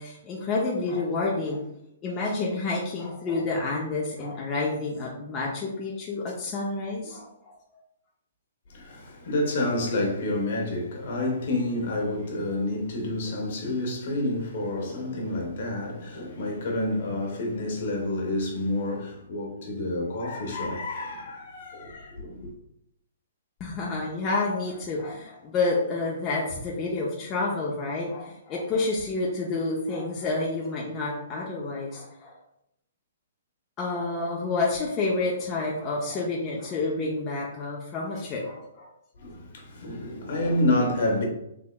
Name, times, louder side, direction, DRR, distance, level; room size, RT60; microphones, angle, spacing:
voice 1, 0.0-1.6 2.0-7.5 23.6-32.3 33.8-38.9, left 3 dB, 25° left, 0.6 m, -29 dB
voice 2, 8.7-22.4 39.2-41.2, left 1 dB, 60° left, 1.0 m, -29 dB
3.5 x 2.8 x 2.2 m
hypercardioid pair, 145°, 0 cm